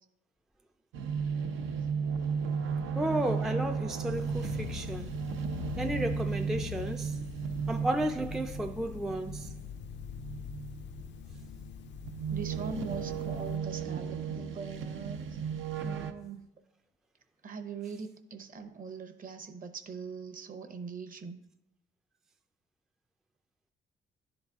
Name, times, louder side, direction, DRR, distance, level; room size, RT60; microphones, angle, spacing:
sound 1, 0.9-16.1, right 6 dB, 85° right, 0.6 m, -35 dB
voice 1, 2.9-5.1 5.8-7.2 7.7-9.5, right 1 dB, ahead, 0.3 m, -33 dB
sound 2, 4.1-13.6, left 11 dB, 65° left, 0.4 m, -43 dB
voice 2, 12.3-15.4 15.8-16.5 17.4-21.4, right 5 dB, 45° right, 0.9 m, -41 dB
11.0 x 4.0 x 3.5 m
cardioid pair, 90°, 20 cm